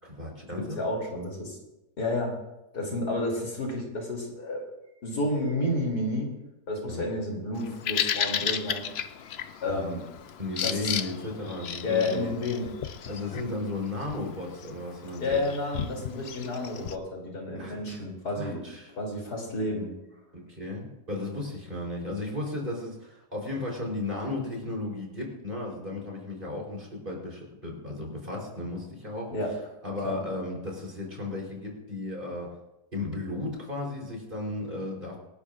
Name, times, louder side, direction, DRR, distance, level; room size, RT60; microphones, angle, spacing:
voice 1, 0.0-0.8 6.9-7.1 9.6-9.9 10.4-12.3 13.1-15.4 17.6-18.0 18.3-18.9 20.3-29.3 29.8-32.5 32.9-35.2, left 2 dB, 30° right, -1 dB, 4.1 m, -35 dB
voice 2, 0.6-1.6 2.0-2.4 2.7-4.6 5.0-6.3 6.7-8.9 9.6-10.0 10.6-10.9 11.8-12.7 15.2-18.6 18.9-19.9 29.3-29.5 30.0-30.2, left 2 dB, 90° left, -1 dB, 3.6 m, -30 dB
Bird vocalization bird call bird song, 7.6-17.0, left 8 dB, 55° left, 0.7 m, -34 dB
26.5 x 12.0 x 2.5 m, 0.96 s
omnidirectional pair, 1.6 m